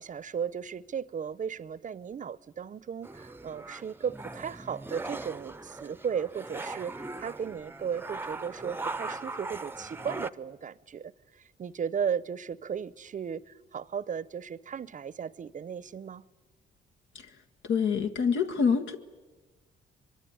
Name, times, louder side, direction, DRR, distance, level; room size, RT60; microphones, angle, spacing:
voice 1, 0.0-16.2, right 7 dB, 40° right, 0.7 m, -35 dB
sound 1, 3.0-10.3, right 2 dB, 10° right, 0.7 m, -40 dB
voice 2, 17.6-19.0, left 6 dB, 75° left, 1.7 m, -26 dB
23.5 x 23.5 x 9.6 m
cardioid pair, 90°, 20 cm